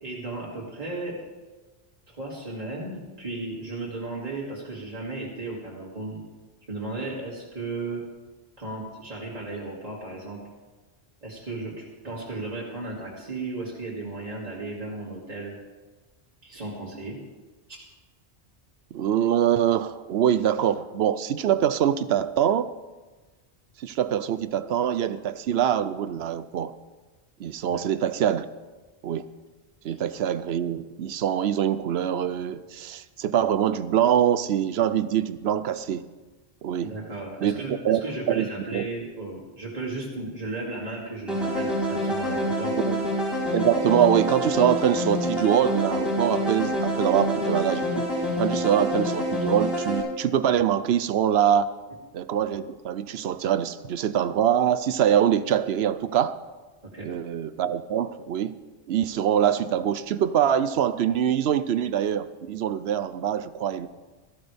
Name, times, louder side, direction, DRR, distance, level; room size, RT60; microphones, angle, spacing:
voice 1, 0.0-1.2 2.1-6.2 6.7-8.1 8.6-10.4 11.2-15.6 16.4-17.2 17.7-17.8 27.7-27.9 29.9-30.0 36.8-42.8 56.8-57.1, right 2 dB, 35° right, -5 dB, 2.4 m, -35 dB
voice 2, 18.9-22.7 23.8-26.7 27.4-28.5 29.0-29.3 29.8-36.0 36.6-36.9 37.4-37.6 37.8-38.0 38.3-38.5 38.7-38.8 42.9-43.0 43.5-48.1 48.4-51.7 52.1-56.4 57.0-58.6 58.9-63.9, right 9 dB, 70° right, 13 dB, 0.8 m, -24 dB
sound 1, 41.3-50.0, equal, ahead, 4.4 m, -27 dB
17.5 x 14.0 x 3.4 m, 1.2 s
omnidirectional pair, 1.1 m